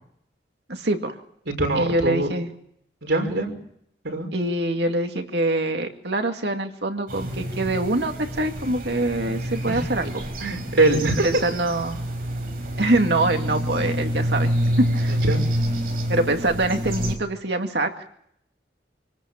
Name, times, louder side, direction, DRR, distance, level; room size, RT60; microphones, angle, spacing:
voice 1, 0.7-1.2 1.8-2.5 4.3-10.2 11.2-12.0 12.8-14.5 14.8-15.2 16.1-18.0, right 2 dB, 70° right, 4 dB, 2.3 m, -24 dB
voice 2, 1.6-2.3 3.0-3.5 4.0-4.3 9.6-9.8 10.4-11.3 15.1-15.4, right 2 dB, 90° right, 3 dB, 5.8 m, -23 dB
sound 1, 7.1-17.2, equal, 50° right, 5.6 m, -27 dB
26.5 x 19.0 x 7.3 m, 0.71 s
head